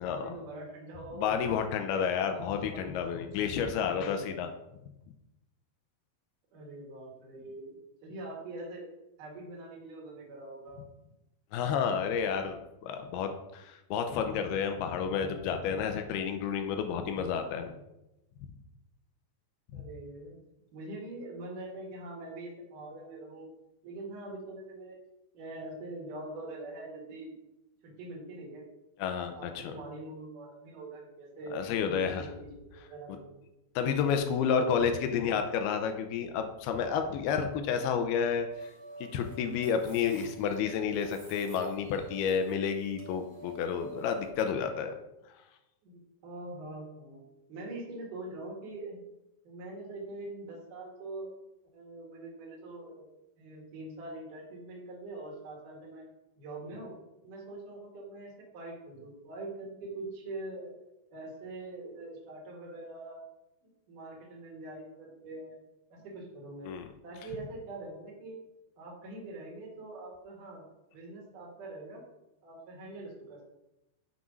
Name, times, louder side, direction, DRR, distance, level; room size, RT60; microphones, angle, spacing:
voice 1, 0.0-1.6 2.2-3.0 3.8-4.4 6.5-8.8 9.2-10.8 17.4-17.8 19.7-20.4 20.7-23.5 23.8-25.0 25.3-27.3 27.8-28.7 29.3-33.4 34.2-34.5 35.1-35.3 45.8-47.2 47.5-49.0 49.5-51.3 51.7-53.1 53.4-56.1 56.4-56.9 57.2-60.7 61.1-63.3 63.6-65.6 65.9-66.7 67.0-68.3 68.8-70.7 70.9-72.0 72.4-73.4, right 2 dB, 60° right, -2 dB, 3.4 m, -44 dB
voice 2, 1.2-4.5 11.5-17.7 19.7-19.8 29.0-29.7 31.5-32.3 33.8-38.7 39.0-44.9 66.7-66.8, left 7 dB, 85° left, 6 dB, 2.6 m, -30 dB
sound 1, 38.5-44.3, right 2 dB, 40° right, 1.8 m, -50 dB
7.3 x 6.2 x 5.3 m, 0.92 s
omnidirectional pair, 4.6 m